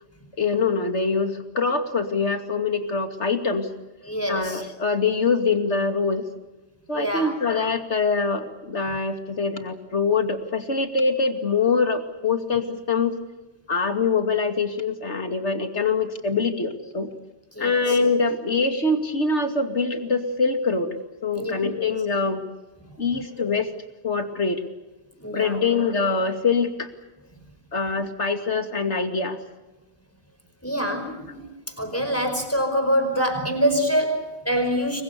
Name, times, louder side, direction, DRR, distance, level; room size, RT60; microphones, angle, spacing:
voice 1, 0.4-3.7 4.3-6.3 6.9-13.2 13.7-17.1 17.6-20.9 21.2-22.4 23.0-23.7 24.0-24.6 25.3-26.9 27.7-29.4, left 4 dB, 80° left, 7 dB, 2.8 m, -24 dB
voice 2, 4.0-4.6 6.9-7.3 17.5-18.0 21.3-21.5 25.2-25.6 30.6-35.0, equal, 10° left, 6 dB, 5.0 m, -25 dB
29.0 x 23.5 x 6.9 m, 1.1 s
omnidirectional pair, 1.2 m